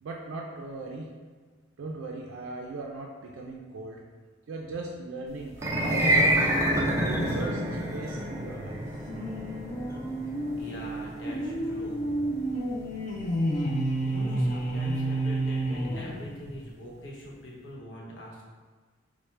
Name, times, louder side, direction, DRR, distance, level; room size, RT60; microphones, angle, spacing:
voice 1, 0.0-1.1 1.8-4.0 4.5-6.2 6.6-8.8, right 3 dB, 85° right, -1 dB, 0.4 m, -38 dB
sound 1, 5.5-15.8, right 1 dB, 15° right, 0.4 m, -29 dB
sound 2, 9.1-16.6, right 1 dB, 45° left, 0.5 m, -30 dB
voice 2, 10.6-12.0 14.0-18.4, equal, 65° left, -4 dB, 0.9 m, -42 dB
4.4 x 2.1 x 3.1 m, 1.4 s
head